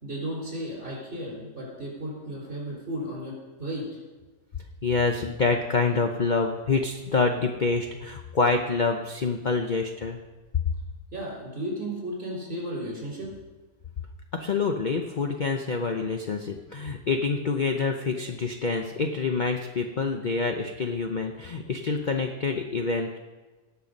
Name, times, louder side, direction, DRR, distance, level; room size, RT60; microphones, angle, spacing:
voice 1, 0.0-3.3 3.6-3.9 11.1-13.3, right 1 dB, 35° right, -3 dB, 5.2 m, -34 dB
voice 2, 4.8-10.2 14.3-23.2, left 4 dB, 55° left, 4 dB, 0.5 m, -26 dB
18.0 x 7.0 x 5.3 m, 1.2 s
omnidirectional pair, 1.9 m